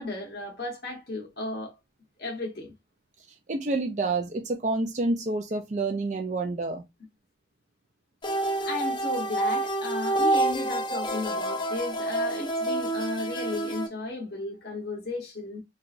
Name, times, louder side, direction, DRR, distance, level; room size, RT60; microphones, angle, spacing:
voice 1, 0.0-1.8 2.2-2.7 8.7-15.6, left 2 dB, 65° left, 1.0 m, -34 dB
voice 2, 3.5-6.9, right 2 dB, 40° right, 0.4 m, -28 dB
sound 1, 8.2-13.9, right 2 dB, 25° left, 0.5 m, -28 dB
4.6 x 2.4 x 2.5 m
head